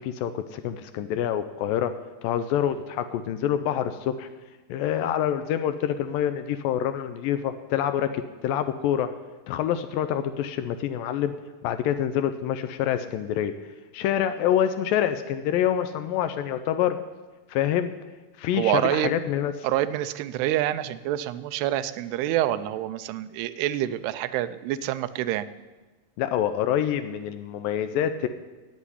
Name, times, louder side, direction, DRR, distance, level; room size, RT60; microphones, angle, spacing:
voice 1, 0.0-1.9 2.2-4.3 4.7-9.1 9.5-11.3 11.6-13.5 13.9-17.0 17.5-17.9 18.4-19.7 26.2-28.3, left 10 dB, 85° left, 10 dB, 2.0 m, -26 dB
voice 2, 18.5-19.1 19.6-25.5, right 13 dB, 85° right, 13 dB, 2.7 m, -27 dB
11.0 x 8.4 x 9.9 m, 1.2 s
omnidirectional pair, 4.6 m